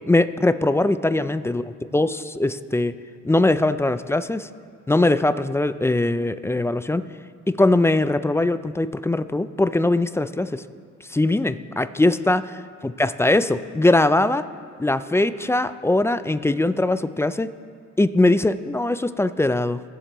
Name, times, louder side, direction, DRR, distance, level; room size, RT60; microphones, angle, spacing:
voice 1, 0.1-2.9 3.2-4.5 4.9-7.0 7.5-10.6 11.1-14.4 14.8-17.5 18.0-19.8, left 2 dB, 10° left, 13 dB, 0.3 m, -21 dB
22.5 x 7.6 x 3.0 m, 2.3 s
cardioid pair, 90°, 30 cm